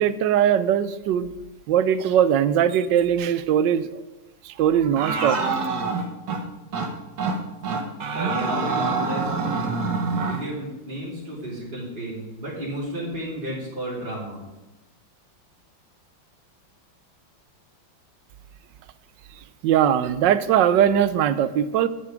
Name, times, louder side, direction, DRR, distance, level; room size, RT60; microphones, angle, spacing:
voice 1, 0.0-1.3 1.7-4.0 4.4-5.6 19.6-21.9, right 9 dB, 75° right, 14 dB, 1.2 m, -20 dB
sound 1, 5.0-6.4 6.7-6.9 7.2-7.4 7.6-10.4, right 4 dB, 55° right, 1.8 m, -26 dB
voice 2, 8.1-9.9 10.2-14.4, right 1 dB, 25° right, -8 dB, 3.3 m, -32 dB
11.0 x 9.5 x 5.1 m, 1.1 s
omnidirectional pair, 2.1 m